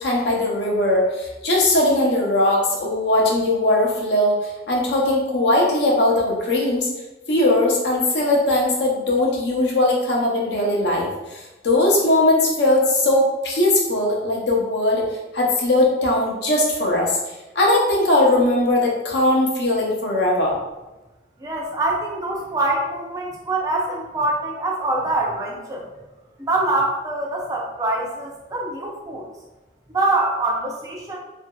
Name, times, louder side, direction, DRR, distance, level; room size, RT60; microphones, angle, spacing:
voice 1, 0.0-6.9 7.3-15.0 15.3-17.2 17.5-20.5, left 1 dB, 65° left, -2 dB, 0.7 m, -19 dB
voice 2, 21.4-25.9 26.5-29.3 29.9-31.2, right 2 dB, 20° right, -3 dB, 0.5 m, -24 dB
2.8 x 2.6 x 2.2 m, 1.1 s
head